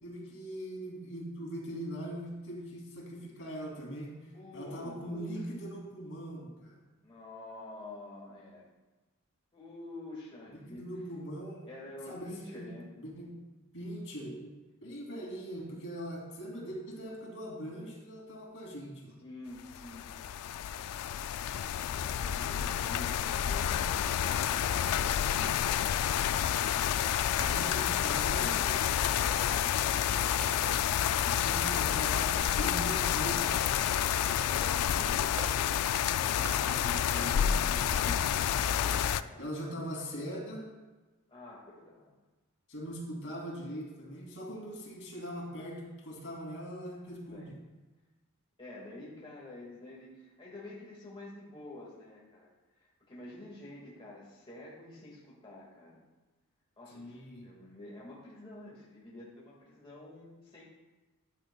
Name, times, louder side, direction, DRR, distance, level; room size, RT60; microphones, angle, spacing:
voice 1, 0.0-6.8 10.5-11.7 12.1-12.7 12.9-13.3 13.7-14.5 14.8-19.2 27.5-28.9 31.3-33.9 36.8-38.2 39.4-40.7 42.7-47.5 56.9-57.5, equal, 60° left, -2 dB, 2.5 m, -41 dB
voice 2, 4.3-5.4 7.0-8.7 9.5-10.9 11.7-12.9 19.2-20.1 21.9-25.7 29.1-31.5 32.1-32.7 34.4-36.9 38.0-39.5 41.3-42.1 47.3-47.5 48.6-52.5 52.8-56.0 56.8-60.6, left 2 dB, 25° left, -5 dB, 1.7 m, -48 dB
sound 1, 19.7-39.2, left 9 dB, 80° left, 0.3 m, -29 dB
sound 2, 27.2-27.6 28.2-28.5 29.2-29.5 30.2-30.9 31.2-31.5 32.2-32.6 33.2-33.7 34.2-34.6 35.2-35.6 36.2-36.7 37.2-37.9 38.2-38.7, right 2 dB, 60° right, 1.6 m, -48 dB
12.5 x 9.2 x 2.2 m, 1.2 s
head